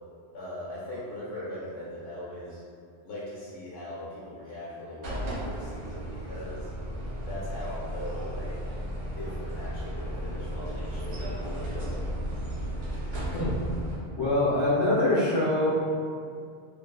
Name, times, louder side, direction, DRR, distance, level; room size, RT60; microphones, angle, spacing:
voice 1, 0.3-2.6 3.0-6.7 7.2-8.6 9.1-11.9, left 1 dB, 85° left, -9 dB, 0.9 m, -40 dB
sound 1, 5.0-14.0, right 1 dB, 85° right, 1.1 m, -34 dB
voice 2, 14.2-15.8, left 1 dB, 45° left, -10 dB, 0.3 m, -24 dB
2.6 x 2.3 x 2.3 m, 2.3 s
omnidirectional pair, 1.1 m